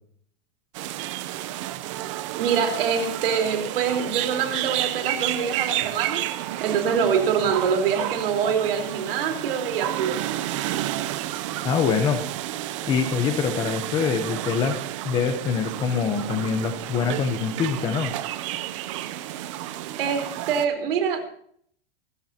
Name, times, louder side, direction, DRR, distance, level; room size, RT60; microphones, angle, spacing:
sound 1, 0.7-20.7, right 14 dB, 30° right, 0.6 m, -31 dB
voice 1, 2.4-6.2 6.6-10.2 20.0-21.2, right 7 dB, 60° right, 5 dB, 4.0 m, -25 dB
voice 2, 11.6-12.2 12.8-14.8 15.0-18.1, left 6 dB, 15° left, 7 dB, 0.8 m, -24 dB
25.5 x 14.0 x 2.9 m, 0.62 s
supercardioid pair, 175°, 32 cm